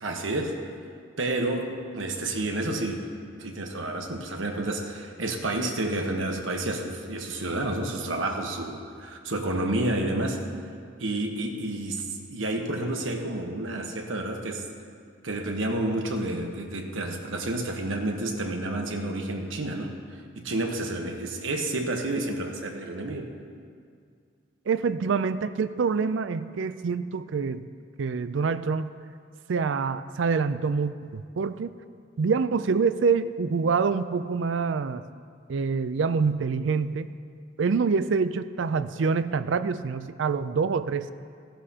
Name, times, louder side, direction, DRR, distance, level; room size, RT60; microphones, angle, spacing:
voice 1, 0.0-0.7 1.2-3.1 3.4-10.4 11.0-14.6 15.2-23.3, right 2 dB, 90° right, 3 dB, 1.2 m, -30 dB
voice 2, 24.7-27.6 28.0-28.9 29.5-31.7 32.2-35.0 35.5-37.1 37.6-41.1, right 5 dB, 75° right, 13 dB, 0.4 m, -26 dB
15.5 x 11.5 x 2.9 m, 2.2 s
head